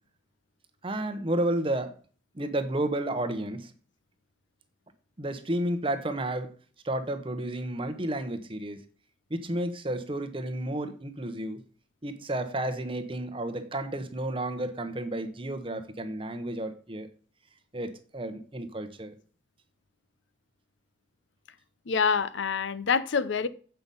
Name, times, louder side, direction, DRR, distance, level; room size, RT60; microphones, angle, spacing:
voice 1, 0.8-2.0 2.3-3.7 5.2-6.5 6.8-8.8 9.3-11.6 12.0-17.1 17.7-19.1, right 1 dB, 30° right, 8 dB, 0.9 m, -31 dB
voice 2, 21.9-23.5, left 5 dB, 85° left, 15 dB, 0.6 m, -26 dB
7.8 x 5.6 x 5.4 m, 0.42 s
head